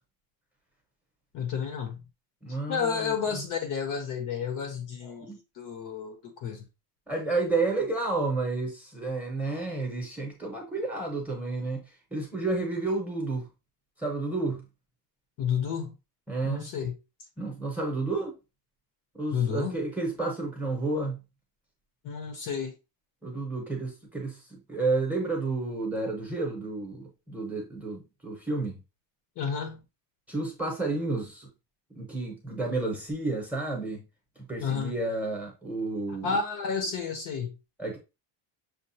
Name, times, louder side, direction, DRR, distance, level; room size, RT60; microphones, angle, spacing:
voice 1, 1.3-2.0 2.7-6.7 15.4-15.9 16.4-16.9 19.3-19.8 22.0-22.7 29.4-29.8 34.6-34.9 36.2-37.6, left 6 dB, 40° left, 0.6 m, -31 dB
voice 2, 2.4-3.4 5.3-5.4 7.1-11.8 12.1-13.5 14.0-14.6 16.3-16.7 17.4-18.4 19.1-21.2 23.2-28.8 30.3-31.5 31.9-34.0 34.4-36.3 37.8-38.0, right 3 dB, 5° right, 0.8 m, -31 dB
6.3 x 2.4 x 2.6 m
cardioid pair, 180°, 48 cm